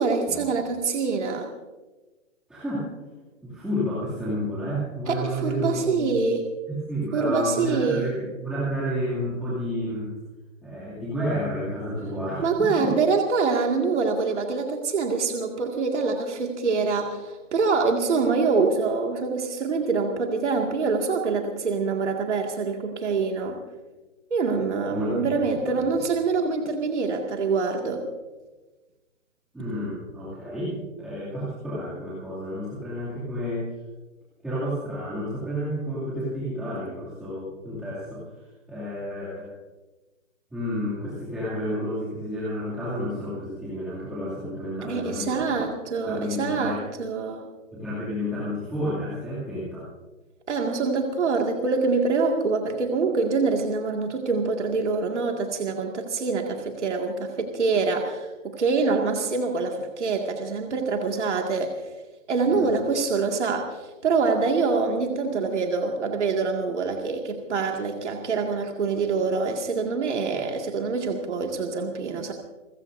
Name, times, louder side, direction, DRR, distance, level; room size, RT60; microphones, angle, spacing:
voice 1, 0.0-1.5 5.1-6.5 7.1-8.0 12.4-23.6 24.3-28.0 44.8-47.4 50.5-61.7 62.3-72.3, right 4 dB, 60° right, 2 dB, 2.2 m, -25 dB
voice 2, 2.5-2.9 3.4-6.2 6.7-10.1 10.6-12.9 24.9-25.3 25.6-25.8 29.5-33.7 34.4-38.2 38.7-39.5 40.5-45.7 46.0-46.8 47.7-49.8 62.5-62.8, equal, ahead, -13 dB, 2.5 m, -30 dB
29.0 x 15.0 x 2.7 m, 1.2 s
hypercardioid pair, 175°, 39 cm